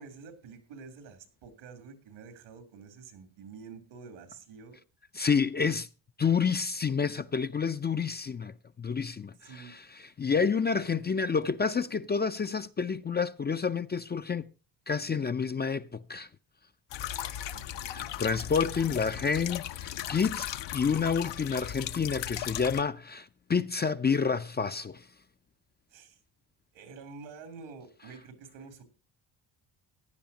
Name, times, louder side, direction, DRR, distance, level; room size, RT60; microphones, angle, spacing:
voice 1, 0.0-4.8 9.4-9.7 17.4-17.7 18.0-18.2 25.9-26.2 26.7-28.8, right 5 dB, 85° right, 3.2 m, -48 dB
voice 2, 5.1-5.9 6.2-9.3 10.2-14.5 14.9-16.3 17.9-25.0, left 6 dB, 20° left, 0.5 m, -29 dB
sound 1, 16.9-22.8, left 11 dB, 65° left, 0.8 m, -37 dB
16.0 x 10.5 x 2.8 m
cardioid pair, 95°, 47 cm